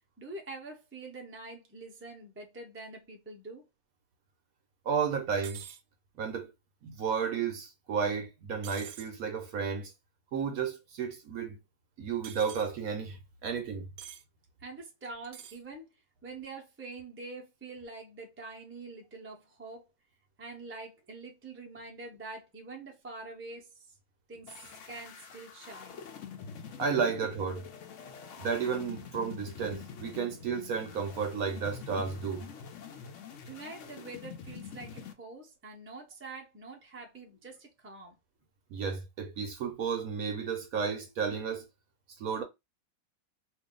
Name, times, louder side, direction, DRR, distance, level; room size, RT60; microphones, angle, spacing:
voice 1, 0.2-3.7 14.6-15.9 16.2-19.8 20.4-23.9 24.3-26.0 33.4-38.1, right 3 dB, 20° right, 0.3 m, -45 dB
voice 2, 4.9-5.6 6.2-6.5 6.8-9.9 10.3-11.6 12.0-13.9 26.8-27.6 28.4-32.5 38.7-41.7 42.2-42.4, right 6 dB, 65° right, 1.0 m, -32 dB
sound 1, 5.4-5.8 8.6-9.1 12.2-12.7 14.0-14.2 15.2-15.6, right 10 dB, 85° right, 1.3 m, -46 dB
sound 2, 24.5-35.1, left 7 dB, 70° left, 0.7 m, -46 dB
2.6 x 2.6 x 3.7 m
omnidirectional pair, 1.9 m